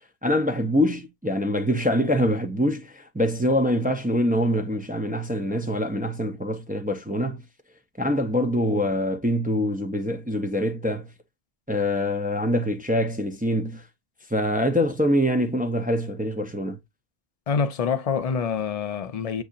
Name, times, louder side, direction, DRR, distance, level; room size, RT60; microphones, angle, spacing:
voice 1, 0.2-7.4 8.0-11.1 11.7-13.8 14.3-16.8, equal, 15° right, 0.3 m, -24 dB
voice 2, 17.5-19.4, left 6 dB, 45° left, 0.5 m, -26 dB
7.7 x 2.7 x 2.4 m
omnidirectional pair, 1.1 m